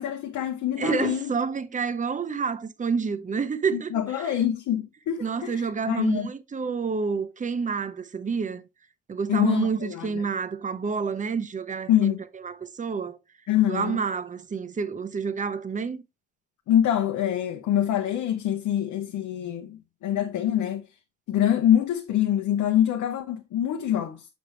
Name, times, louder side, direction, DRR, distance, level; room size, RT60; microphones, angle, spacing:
voice 1, 0.0-1.3 3.7-6.3 9.3-10.2 11.9-12.2 13.5-14.0 16.7-20.8 21.3-24.3, left 11 dB, 75° left, 0.8 m, -25 dB
voice 2, 0.8-4.4 5.2-8.6 9.1-12.1 12.4-13.2 13.7-16.0, right 5 dB, 25° right, 0.7 m, -29 dB
6.4 x 5.2 x 3.1 m
cardioid pair, 90°, 30 cm